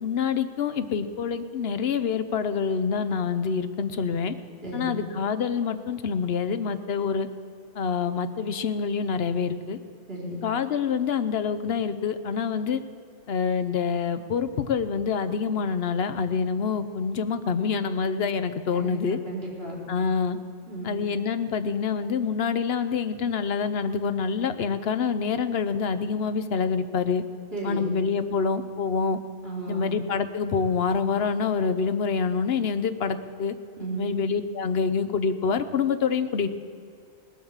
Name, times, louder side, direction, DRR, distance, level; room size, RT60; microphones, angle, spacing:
voice 1, 0.0-4.3 4.7-7.3 7.8-9.8 10.4-12.8 13.3-19.2 19.9-20.4 20.8-27.2 27.6-29.2 29.7-33.5 34.0-36.5, left 6 dB, 60° left, 11 dB, 1.0 m, -26 dB
voice 2, 4.6-5.0 10.1-10.4 18.7-19.0 19.3-19.8 20.7-21.0 27.5-27.9 29.4-29.9 33.8-34.0, right 2 dB, 55° right, -6 dB, 4.1 m, -33 dB
20.0 x 8.5 x 7.2 m, 2.3 s
omnidirectional pair, 1.2 m